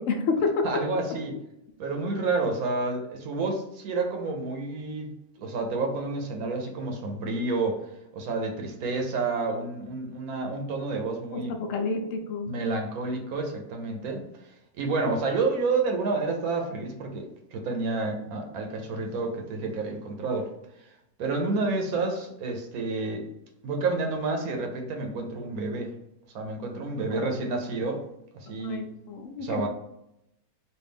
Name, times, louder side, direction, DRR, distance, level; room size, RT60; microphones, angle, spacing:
voice 1, 0.0-0.7 11.3-12.5 27.1-27.3 28.6-29.7, left 4 dB, 70° left, 3 dB, 0.9 m, -29 dB
voice 2, 0.6-1.4 1.8-5.1 5.4-7.8 8.1-11.5 12.5-14.2 14.8-20.5 21.2-23.2 23.6-25.9 26.3-28.0 28.3-28.9 29.4-29.7, right 3 dB, 80° right, 2 dB, 1.1 m, -29 dB
3.3 x 2.4 x 3.4 m, 0.82 s
omnidirectional pair, 1.5 m